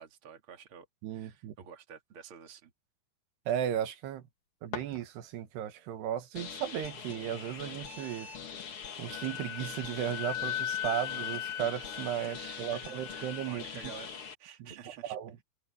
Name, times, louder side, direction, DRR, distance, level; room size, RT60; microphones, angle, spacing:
voice 1, 0.0-2.7 12.4-15.2, right 7 dB, 35° right, 2.8 m, -50 dB
voice 2, 1.0-1.5 3.5-4.2 4.6-8.3 9.0-13.6 14.6-14.7 15.0-15.4, right 10 dB, 85° right, 3.6 m, -35 dB
sound 1, 4.2-5.7, left 7 dB, 60° left, 4.4 m, -45 dB
sound 2, 6.3-14.3, left 6 dB, 45° left, 2.1 m, -43 dB
Wind instrument woodwind instrument, 9.1-13.5, left 11 dB, 80° left, 1.6 m, -38 dB
omnidirectional pair, 4.6 m